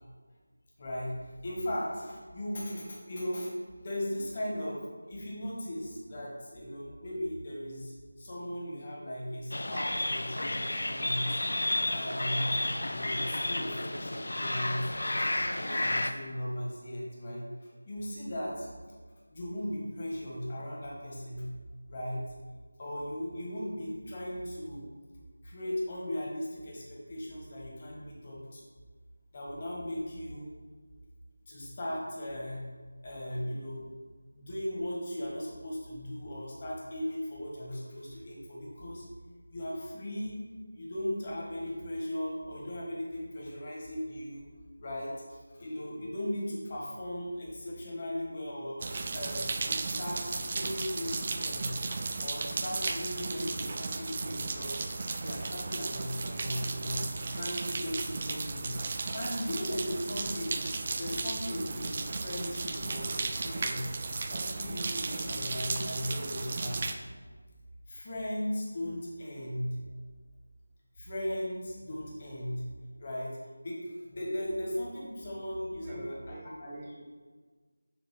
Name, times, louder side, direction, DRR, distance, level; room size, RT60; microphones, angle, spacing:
voice 1, 0.8-1.1 1.4-4.8 5.1-11.4 11.9-12.5 12.9-15.3 15.5-18.7 19.3-21.5 21.9-22.2 22.8-24.9 25.4-28.7 29.3-30.5 31.5-32.6 33.0-33.9 34.3-39.1 39.5-40.4 40.7-44.4 44.8-48.8 49.1-51.7 52.2-57.0 57.3-58.7 59.1-60.7 61.0-63.9 64.3-66.9 67.9-69.8 71.0-72.6 73.0-73.4 73.6-76.1 76.6-76.8, equal, 30° left, -4 dB, 1.6 m, -37 dB
sound 1, 9.5-16.1, left 1 dB, 65° left, 0.5 m, -31 dB
sound 2, 48.8-66.9, right 3 dB, 35° right, 0.4 m, -35 dB
voice 2, 75.8-77.0, right 1 dB, 15° right, -1 dB, 0.8 m, -45 dB
6.9 x 3.5 x 5.4 m, 1.4 s
figure-of-eight pair, 170°, 0 cm